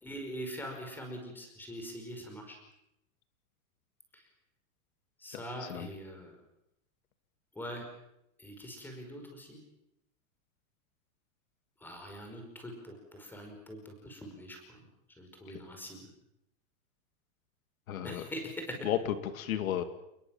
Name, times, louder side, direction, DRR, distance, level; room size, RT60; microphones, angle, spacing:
voice 1, 0.0-2.6 4.1-4.2 5.2-6.3 7.6-7.8 8.4-9.6 11.8-14.8 15.2-16.0 18.0-18.8, equal, 5° left, 4 dB, 5.2 m, -43 dB
voice 2, 5.3-5.9 17.9-18.3 18.8-19.8, left 10 dB, 85° left, 9 dB, 2.9 m, -33 dB
29.0 x 21.5 x 7.5 m, 0.82 s
supercardioid pair, 180°, 41 cm